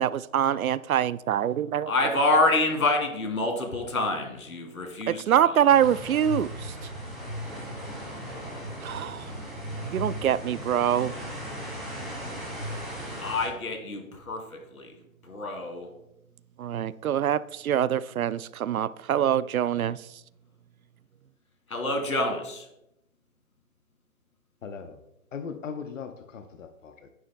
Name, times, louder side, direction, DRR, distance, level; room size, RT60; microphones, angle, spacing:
voice 1, 0.0-1.9 5.1-6.7 8.8-9.3 9.8-11.1 16.6-20.0, right 10 dB, 75° right, 0.5 m, -25 dB
voice 2, 1.9-5.6 13.2-14.9 15.2-15.9 21.7-22.6, left 2 dB, 85° left, 2.7 m, -27 dB
sound 1, 5.7-13.5, equal, ahead, 2.3 m, -37 dB
voice 3, 24.6-25.0 25.3-27.1, left 6 dB, 60° left, 0.9 m, -39 dB
9.8 x 9.6 x 2.2 m
hypercardioid pair, 150°, 42 cm